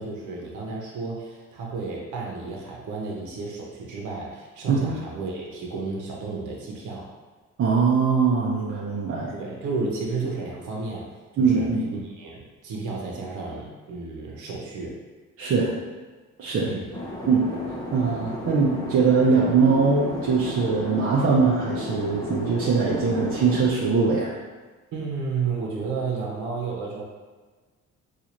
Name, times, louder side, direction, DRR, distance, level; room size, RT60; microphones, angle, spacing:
voice 1, 0.0-7.1 9.3-15.0 16.6-16.9 24.9-27.0, right 4 dB, 75° right, -2 dB, 0.9 m, -32 dB
voice 2, 7.6-9.3 11.4-11.9 15.4-15.7 16.4-16.7 17.3-24.3, right 4 dB, 50° right, -5 dB, 0.6 m, -22 dB
sound 1, 16.9-23.7, left 1 dB, 15° left, 0.6 m, -34 dB
3.8 x 2.5 x 3.0 m, 1.4 s
cardioid pair, 90°, 30 cm